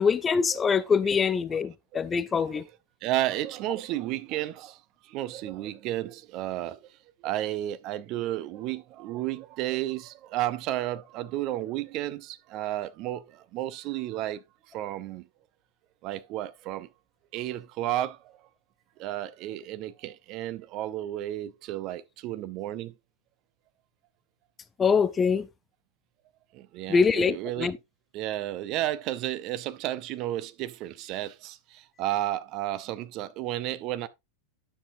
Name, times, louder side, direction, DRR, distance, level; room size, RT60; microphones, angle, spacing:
voice 1, 0.0-2.6 24.8-25.5 26.9-27.8, left 5 dB, 20° left, 0.4 m, -24 dB
voice 2, 3.0-4.8 5.0-6.8 7.2-15.3 16.0-16.9 17.3-18.4 19.0-22.9 26.5-27.7 28.1-34.1, right 14 dB, 40° right, 0.6 m, -32 dB
10.0 x 6.8 x 2.6 m
figure-of-eight pair, 90°, 0 cm